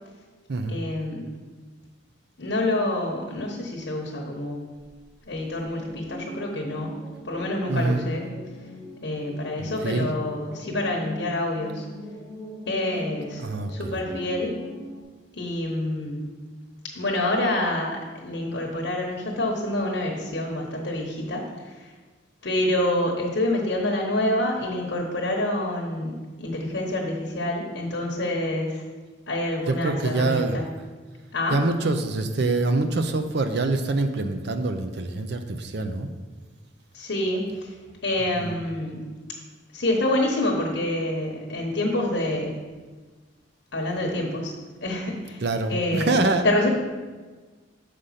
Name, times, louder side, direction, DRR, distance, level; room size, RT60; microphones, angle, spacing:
voice 1, 0.7-1.2 2.4-4.6 5.3-6.9 7.2-8.2 9.0-11.8 12.7-13.4 13.7-14.6 15.3-16.2 16.9-21.9 22.4-28.8 29.3-30.7 31.3-31.6 36.9-37.7 38.0-39.0 39.7-42.5 43.7-44.5 44.8-45.4 45.7-46.1 46.4-46.7, left 1 dB, 60° left, 0 dB, 1.0 m, -27 dB
sound 1, 5.6-15.0, left 1 dB, 10° right, 2.0 m, -41 dB
voice 2, 7.7-8.0 9.6-10.1 13.4-14.0 29.7-30.6 31.5-36.1 38.4-38.6 45.4-46.5, right 2 dB, 55° right, 8 dB, 0.5 m, -25 dB
6.6 x 5.1 x 5.6 m, 1.4 s
head